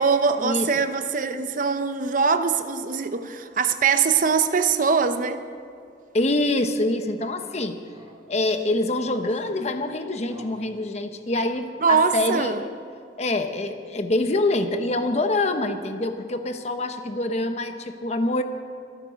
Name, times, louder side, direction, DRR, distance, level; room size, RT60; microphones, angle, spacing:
voice 1, 0.0-5.5 11.8-12.6, right 5 dB, 50° right, 0.8 m, -22 dB
sound 1, 6.0-6.1 6.4-6.5 7.9-9.9 10.3-11.7, right 1 dB, 30° right, 2.6 m, -50 dB
voice 2, 6.1-7.8 8.3-12.7 13.2-18.4, left 2 dB, 40° left, 1.0 m, -25 dB
24.5 x 9.1 x 5.2 m
head